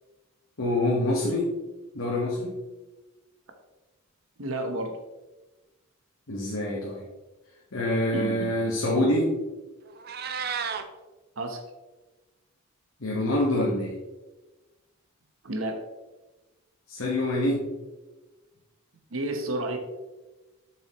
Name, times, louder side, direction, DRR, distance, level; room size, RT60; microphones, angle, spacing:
voice 1, 0.6-1.5 1.9-2.6 6.3-7.0 7.7-9.3 13.0-13.9 16.9-17.6, left 1 dB, 70° left, -4 dB, 1.3 m, -26 dB
voice 2, 4.4-5.0 8.1-8.5 11.4-11.6 15.4-15.8 19.1-19.8, right 1 dB, 65° right, 5 dB, 1.0 m, -30 dB
Meow, 9.9-10.8, right 6 dB, 45° right, 0.5 m, -32 dB
7.5 x 6.3 x 3.0 m, 1.1 s
head